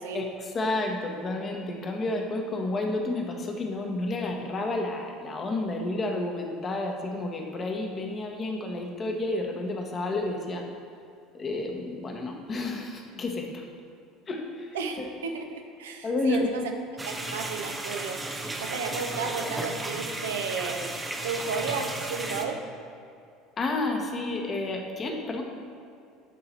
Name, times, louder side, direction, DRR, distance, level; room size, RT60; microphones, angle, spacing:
voice 1, 0.1-10.7 11.3-13.6 14.3-15.1 16.0-16.5 23.6-25.4, left 2 dB, 35° left, 2 dB, 1.1 m, -30 dB
voice 2, 14.7-16.6 17.0-18.2 18.6-20.9 21.2-22.6, right 5 dB, 75° right, 4 dB, 0.6 m, -33 dB
sound 1, 17.0-22.4, right 2 dB, 15° right, 0.8 m, -34 dB
10.0 x 3.9 x 4.4 m, 2.4 s
figure-of-eight pair, 65°, 0 cm